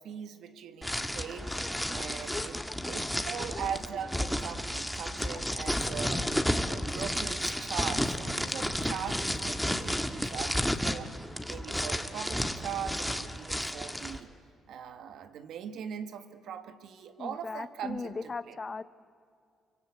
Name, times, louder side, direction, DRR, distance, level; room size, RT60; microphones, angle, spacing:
voice 1, 0.0-2.6 2.9-6.3 6.6-11.1 11.5-14.3 14.7-18.6, right 8 dB, 75° right, 9 dB, 1.7 m, -40 dB
sound 1, 0.8-14.2, equal, ahead, 1.7 m, -32 dB
voice 2, 2.3-3.0 3.5-3.7 5.8-5.9 17.2-18.8, left 4 dB, 30° left, 14 dB, 0.9 m, -39 dB
28.5 x 24.5 x 8.2 m, 2.2 s
cardioid pair, 90°, 0 cm